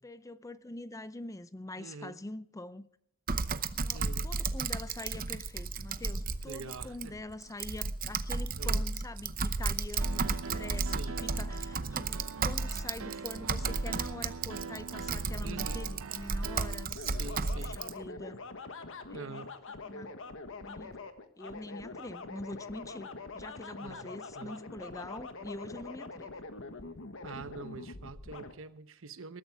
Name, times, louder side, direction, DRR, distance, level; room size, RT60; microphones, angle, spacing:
voice 1, 0.0-2.9 3.8-18.4 19.1-19.4 19.8-20.1 20.6-21.0 21.4-23.1 23.3-26.3, left 2 dB, 15° left, 0.6 m, -44 dB
voice 2, 1.8-2.2 3.9-4.3 6.5-7.2 8.5-8.9 10.8-11.2 15.4-15.8 16.9-17.8 19.1-19.5 23.8-24.6 27.2-29.4, right 4 dB, 65° right, 1.0 m, -45 dB
Typing, 3.3-17.9, right 4 dB, 40° right, 0.8 m, -34 dB
Piano, 10.0-16.8, right 5 dB, 85° right, 0.7 m, -43 dB
sound 1, 16.9-28.5, left 3 dB, 65° left, 1.4 m, -44 dB
20.5 x 13.5 x 3.6 m
head